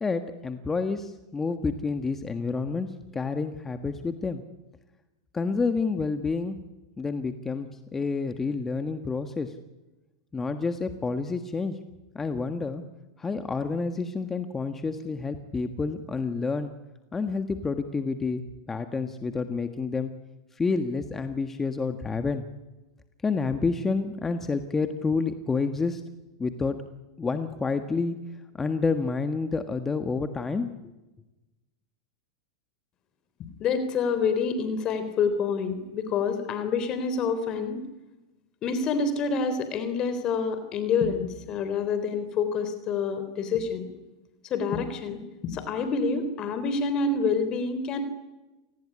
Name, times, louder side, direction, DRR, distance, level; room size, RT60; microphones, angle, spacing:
voice 1, 0.0-2.9 3.1-4.4 5.3-6.6 7.0-9.5 10.3-11.8 12.1-12.8 13.2-16.7 17.1-18.4 18.7-20.1 20.5-22.4 23.2-26.0 26.4-26.7 27.2-28.2 28.5-30.7, left 4 dB, 15° left, 8 dB, 1.5 m, -29 dB
voice 2, 33.6-37.8 38.6-43.9 44.5-48.0, left 5 dB, 35° left, 10 dB, 3.6 m, -27 dB
28.0 x 19.0 x 9.9 m, 1.1 s
supercardioid pair, 130°, 2 cm